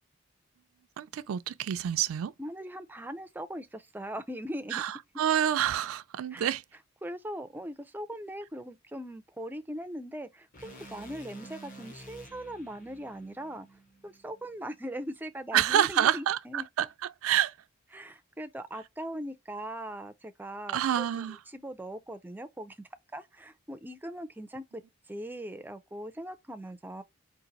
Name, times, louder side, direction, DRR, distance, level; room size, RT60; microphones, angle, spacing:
voice 1, 1.0-2.3 4.7-6.6 15.5-16.9 17.2-17.5 20.7-21.4, right 10 dB, 90° right, 0.3 m, -27 dB
voice 2, 2.4-4.8 6.3-6.5 7.0-16.7 17.9-24.8 25.1-27.0, right 1 dB, 10° right, 0.4 m, -40 dB
sound 1, 10.5-14.7, right 1 dB, 40° left, 1.1 m, -50 dB
4.0 x 2.5 x 3.9 m
head